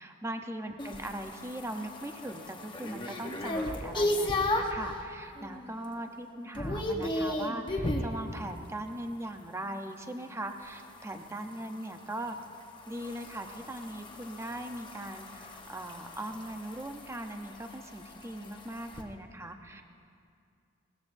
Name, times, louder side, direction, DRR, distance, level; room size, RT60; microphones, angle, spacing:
voice 1, 0.0-12.4 12.9-19.8, right 1 dB, 15° right, 5 dB, 0.7 m, -40 dB
sound 1, 0.8-4.9 5.4-5.8 6.0-8.1 10.6-19.0, left 1 dB, 25° left, 1.1 m, -35 dB
20.5 x 17.5 x 2.7 m, 2.4 s
head